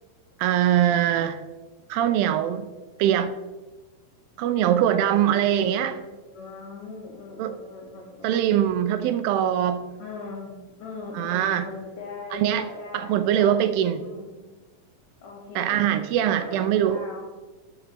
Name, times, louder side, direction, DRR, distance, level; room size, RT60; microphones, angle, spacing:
voice 1, 0.4-1.4 1.9-2.7 3.0-3.3 4.4-6.0 7.4-7.5 8.2-9.8 11.2-11.7 12.3-12.7 12.9-14.0 15.6-17.0, right 10 dB, 80° right, 10 dB, 2.2 m, -22 dB
voice 2, 5.3-6.1 6.3-8.4 10.0-13.5 14.0-14.4 15.2-17.3, left 3 dB, 65° left, -3 dB, 2.9 m, -40 dB
13.5 x 6.7 x 2.9 m, 1.2 s
omnidirectional pair, 4.2 m